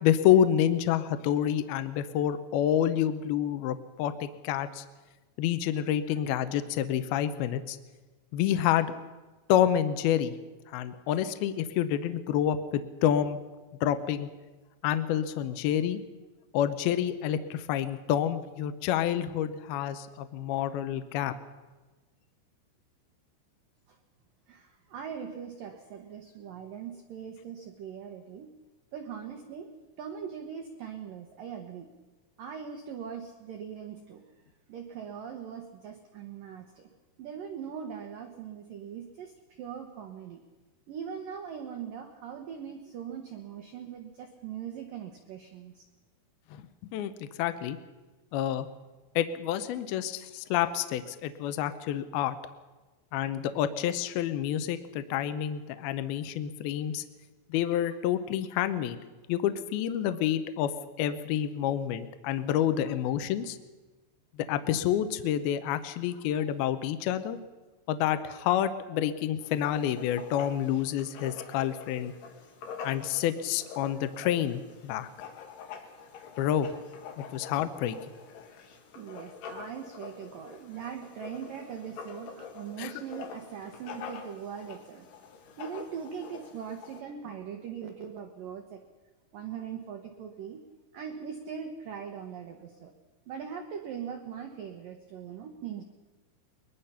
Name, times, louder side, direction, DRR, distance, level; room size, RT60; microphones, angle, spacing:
voice 1, 0.0-4.8 5.4-7.8 8.3-8.9 9.5-10.3 10.7-13.4 13.8-14.3 14.8-16.0 16.5-21.3 46.5-46.6 46.9-47.8 48.3-48.7 49.2-52.4 53.1-57.0 57.5-59.0 59.3-60.7 61.0-63.6 64.5-67.4 67.9-72.1 72.8-75.1 76.4-76.7 77.2-78.0 82.8-82.9, left 10 dB, 85° left, 11 dB, 2.2 m, -28 dB
voice 2, 24.5-28.5 28.9-29.7 30.0-31.9 32.4-34.2 34.7-36.9 37.2-40.4 40.9-45.9 79.0-85.1 85.6-88.8 89.3-90.6 90.9-92.9 93.3-95.8, right 7 dB, 75° right, 4 dB, 2.1 m, -41 dB
Writing, 69.4-87.0, left 6 dB, 65° left, 3.6 m, -46 dB
22.0 x 21.5 x 5.7 m, 1.2 s
omnidirectional pair, 5.7 m